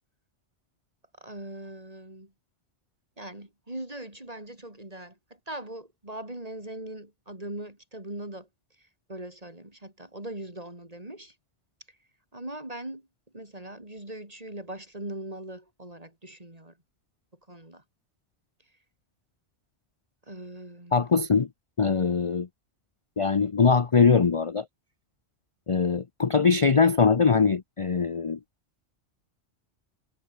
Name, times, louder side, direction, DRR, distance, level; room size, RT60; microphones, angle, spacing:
voice 1, 1.2-2.3 3.2-5.2 5.5-8.5 9.1-11.3 12.3-13.0 13.3-16.7 17.5-17.8 20.3-21.1, right 1 dB, 30° right, 4.8 m, -40 dB
voice 2, 20.9-21.5 21.8-22.5 23.2-24.6 25.7-28.4, left 5 dB, 30° left, 0.7 m, -22 dB
omnidirectional pair, 1.2 m